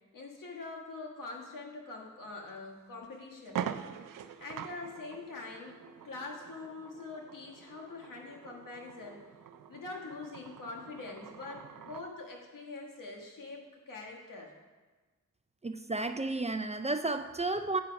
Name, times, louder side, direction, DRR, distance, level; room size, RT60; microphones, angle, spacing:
voice 1, 0.1-3.7 4.1-9.2 9.7-14.5, left 3 dB, 80° left, -1 dB, 1.6 m, -44 dB
sound 1, 2.5-2.6 3.0-3.1 3.4-12.1, right 9 dB, 80° right, 0.5 m, -44 dB
voice 2, 15.6-17.8, right 2 dB, 20° right, 8 dB, 0.4 m, -32 dB
8.5 x 5.8 x 5.1 m, 1.3 s
cardioid pair, 70°, 32 cm